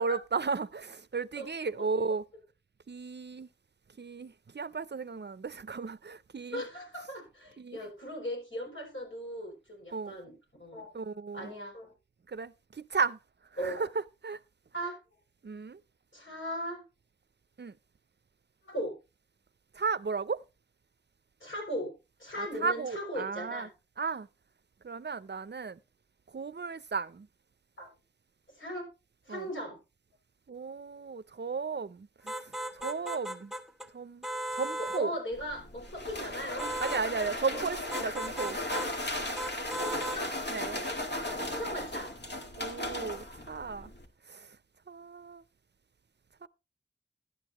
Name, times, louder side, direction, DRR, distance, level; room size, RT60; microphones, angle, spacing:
voice 1, 0.0-2.2 2.9-3.5 4.0-6.6 7.6-7.8 9.9-10.1 10.9-11.5 12.3-13.2 13.6-13.9 14.2-14.4 15.4-15.8 17.6-17.7 19.7-20.4 22.4-23.7 24.0-24.3 24.8-25.8 26.3-27.3 29.3-29.5 30.5-32.3 32.7-33.5 33.9-34.3 34.5-35.1 36.8-38.6 40.5-40.9 42.6-43.9 44.3-44.5 44.9-45.4 46.4-46.5, right 5 dB, 60° right, 0.5 m, -34 dB
voice 2, 6.5-10.3 10.6-10.9 11.3-11.9 13.6-13.8 14.7-15.0 16.1-16.8 18.6-19.0 21.4-21.9 22.2-23.7 27.8-27.9 28.6-28.9 29.3-29.8 34.8-36.7 37.1-37.7 39.5-40.3 41.1-42.1, equal, 80° left, 6.4 m, -38 dB
sound 1, 32.3-33.9 34.2-35.1 36.6-37.0 37.9-38.9 39.4-40.2, right 1 dB, ahead, 1.0 m, -37 dB
sound 2, 35.3-44.1, left 1 dB, 60° left, 1.9 m, -36 dB
12.0 x 10.5 x 3.0 m
wide cardioid pair, 40°, 20 cm